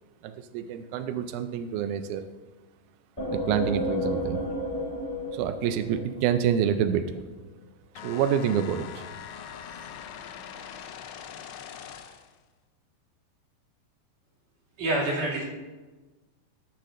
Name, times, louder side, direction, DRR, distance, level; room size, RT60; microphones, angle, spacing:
voice 1, 0.2-2.2 3.3-4.4 5.3-7.2 8.0-9.1, right 9 dB, 85° right, 9 dB, 1.7 m, -27 dB
sound 1, 3.2-6.8, left 1 dB, 20° left, 0.7 m, -32 dB
sound 2, 8.0-12.4, left 8 dB, 85° left, 2.5 m, -42 dB
voice 2, 14.8-15.4, right 1 dB, 50° right, -5 dB, 3.4 m, -26 dB
19.0 x 6.8 x 2.5 m, 1.2 s
omnidirectional pair, 4.1 m